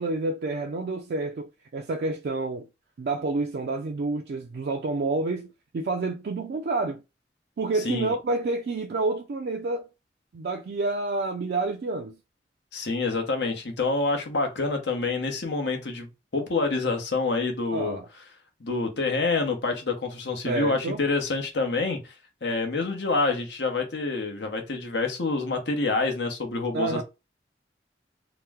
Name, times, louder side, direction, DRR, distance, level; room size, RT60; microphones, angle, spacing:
voice 1, 0.0-2.7 3.0-7.0 7.6-9.9 10.3-12.2 17.7-18.1 20.4-21.0 26.7-27.0, right 3 dB, 60° right, 0.3 m, -29 dB
voice 2, 7.8-8.1 12.7-16.1 16.3-18.0 18.6-22.1 22.4-27.0, left 3 dB, 80° left, 0.8 m, -27 dB
2.9 x 2.1 x 3.4 m
head